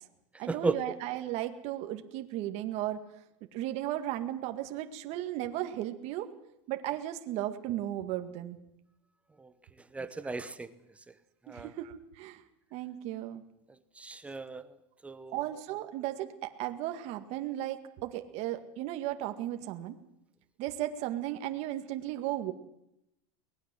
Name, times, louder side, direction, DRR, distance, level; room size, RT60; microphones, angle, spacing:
voice 1, 0.4-3.0 3.5-6.3 6.7-8.6 10.2-10.3 11.5-12.4 12.7-13.4 15.3-20.0 20.6-22.5, right 13 dB, 40° right, 7 dB, 2.0 m, -35 dB
voice 2, 9.9-10.7 11.5-11.7 14.0-14.6 15.0-15.3, right 3 dB, 10° right, 12 dB, 0.9 m, -34 dB
23.0 x 19.5 x 7.7 m, 0.84 s
supercardioid pair, 160°, 16 cm